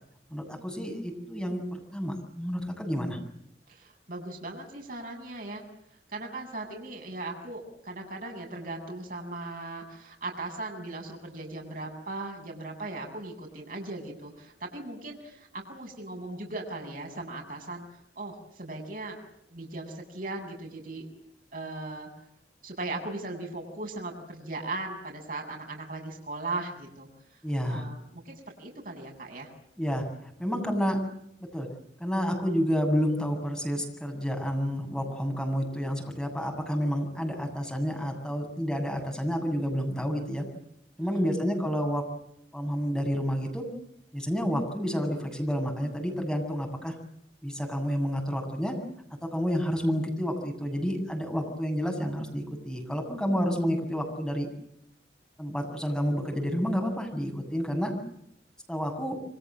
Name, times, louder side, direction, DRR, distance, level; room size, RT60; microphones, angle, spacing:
voice 1, 0.3-3.2 27.4-27.9 29.8-31.0 31.5-31.7 32.0-40.4 41.0-42.0 42.5-43.6 44.1-46.9 47.4-48.8 49.2-54.5 55.4-57.9 58.7-59.2, equal, 5° left, 2 dB, 7.8 m, -29 dB
voice 2, 3.7-5.6 6.1-17.8 18.2-19.2 19.5-21.1 21.5-22.1 22.6-29.5 41.0-41.3, right 2 dB, 50° right, 2 dB, 8.0 m, -38 dB
28.5 x 25.5 x 7.8 m, 0.74 s
head